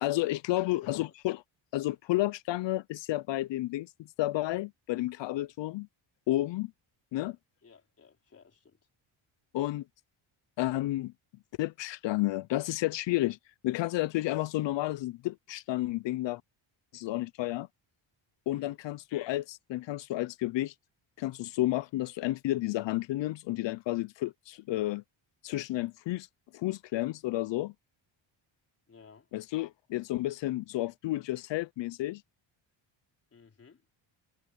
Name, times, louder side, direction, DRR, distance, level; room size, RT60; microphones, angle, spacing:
voice 1, 0.0-1.4 1.7-3.9 4.2-5.9 6.3-6.7 7.1-7.4 9.5-9.8 10.6-11.1 11.6-13.4 13.6-16.4 16.9-17.7 18.5-20.7 21.2-25.0 25.4-26.3 26.5-27.7 29.3-32.2, left 16 dB, 65° left, 0.5 m, -31 dB
voice 2, 0.5-1.1 7.6-8.8 18.5-18.8 28.9-29.3 33.3-33.8, left 5 dB, 30° left, 4.8 m, -56 dB
cardioid pair, 175°, 49 cm